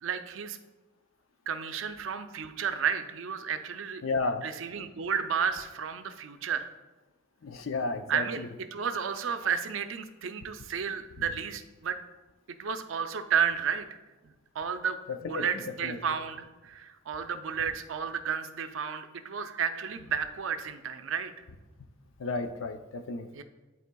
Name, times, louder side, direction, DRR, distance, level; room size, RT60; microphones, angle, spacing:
voice 1, 0.0-0.6 1.5-4.0 4.4-6.7 8.1-12.0 12.6-14.0 14.2-21.3 23.3-23.4, right 7 dB, 80° right, 9 dB, 0.5 m, -32 dB
voice 2, 4.0-4.4 7.4-8.2 15.2-15.4 15.8-16.0 22.2-23.3, left 3 dB, 85° left, 8 dB, 0.5 m, -32 dB
11.0 x 4.2 x 2.3 m, 1.2 s
head